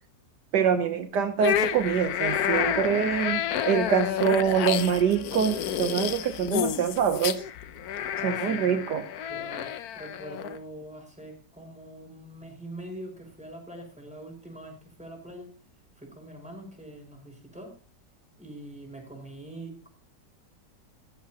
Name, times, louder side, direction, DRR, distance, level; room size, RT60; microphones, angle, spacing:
voice 1, 0.5-7.4 8.2-9.0, right 7 dB, 70° right, 7 dB, 1.5 m, -25 dB
sound 1, 1.4-10.6, left 9 dB, 65° left, 1.1 m, -30 dB
voice 2, 8.0-8.8 9.3-15.5 16.0-17.7 18.4-19.9, right 1 dB, 5° right, 1 dB, 5.2 m, -43 dB
14.5 x 14.0 x 2.9 m, 0.39 s
omnidirectional pair, 1.9 m